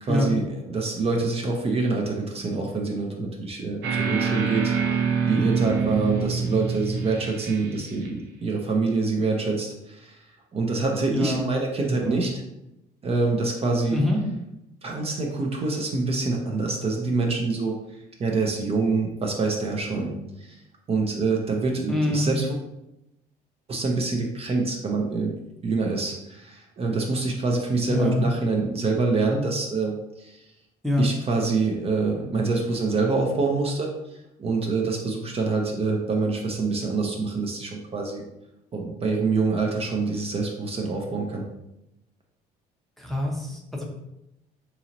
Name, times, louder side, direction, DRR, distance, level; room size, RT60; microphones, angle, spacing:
voice 1, 0.0-4.7 5.3-10.2 10.5-12.4 13.0-14.0 14.8-17.7 18.2-20.6 20.9-22.5 23.7-25.3 25.6-29.9 30.2-30.4 31.0-33.9 34.4-38.2 38.7-41.4, right 3 dB, 35° right, 1 dB, 0.6 m, -26 dB
sound 1, 3.8-8.1, right 6 dB, 80° right, 0.7 m, -26 dB
voice 2, 11.1-11.5 11.8-12.3 13.9-14.2 21.9-22.3 27.9-28.3 30.8-31.1 43.0-43.8, left 1 dB, ahead, -2 dB, 0.7 m, -25 dB
3.8 x 2.9 x 2.8 m, 0.87 s
cardioid pair, 110°, 17 cm